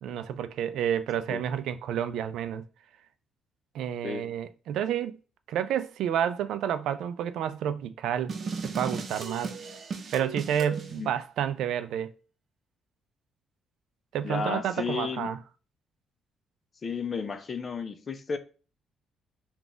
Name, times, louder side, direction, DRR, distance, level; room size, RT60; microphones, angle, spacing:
voice 1, 0.0-2.6 3.7-5.2 5.5-8.3 8.6-9.6 10.1-12.1 14.1-15.4, right 9 dB, 80° right, 0.3 m, -30 dB
sound 1, 8.3-10.9, right 5 dB, 50° right, 0.7 m, -35 dB
voice 2, 14.2-15.3 16.8-18.4, left 5 dB, 40° left, 0.5 m, -33 dB
3.8 x 2.3 x 3.8 m
cardioid pair, 90°, 0 cm